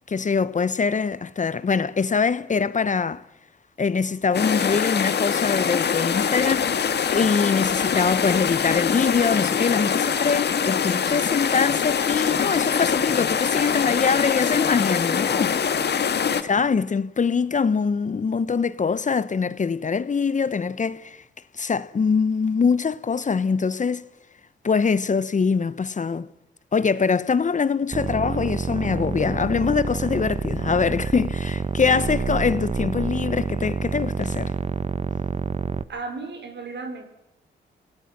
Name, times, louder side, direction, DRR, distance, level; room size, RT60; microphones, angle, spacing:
voice 1, 0.1-3.2 3.8-6.7 7.1-15.6 16.4-21.2 21.5-24.0 24.6-26.3 26.7-34.5, left 5 dB, 40° left, 0.9 m, -23 dB
sound 1, 4.3-16.4, left 7 dB, 60° left, 1.6 m, -23 dB
sound 2, 27.9-35.8, right 5 dB, 35° right, 0.9 m, -28 dB
voice 2, 31.9-32.3 35.9-37.0, right 4 dB, 65° right, 5.3 m, -36 dB
26.5 x 18.0 x 6.0 m
cardioid pair, 75°, 20 cm